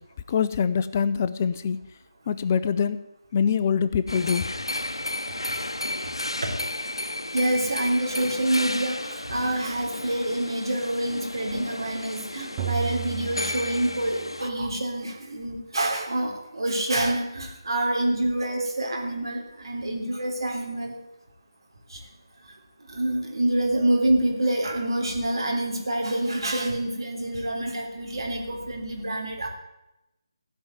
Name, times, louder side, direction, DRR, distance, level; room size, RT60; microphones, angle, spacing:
voice 1, 0.3-1.8 2.3-3.0 3.3-4.4, left 7 dB, 30° left, 14 dB, 0.5 m, -24 dB
sound 1, 4.1-14.5, left 1 dB, 80° left, 0.8 m, -33 dB
voice 2, 7.3-21.0 21.9-22.0 22.9-29.5, right 1 dB, 65° right, 1 dB, 3.4 m, -27 dB
sound 2, 12.6-14.5, right 10 dB, 20° right, 0.6 m, -34 dB
15.5 x 5.6 x 9.5 m, 0.95 s
figure-of-eight pair, 155°, 3 cm